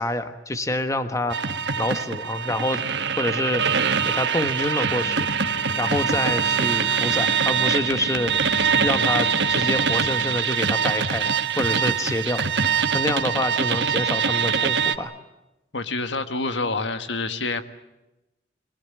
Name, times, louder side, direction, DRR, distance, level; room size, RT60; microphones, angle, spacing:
voice 1, 0.0-1.4 1.8-2.8 3.2-5.3 5.8-8.5 8.8-12.5 12.9-15.1, left 1 dB, 15° left, 9 dB, 1.2 m, -27 dB
sound 1, 1.3-15.0, right 6 dB, 65° right, 1.3 m, -23 dB
sound 2, 4.8-10.4, left 2 dB, 50° left, 0.9 m, -39 dB
voice 2, 15.7-17.6, left 3 dB, 75° left, 9 dB, 1.5 m, -27 dB
25.5 x 20.5 x 9.0 m, 0.98 s
head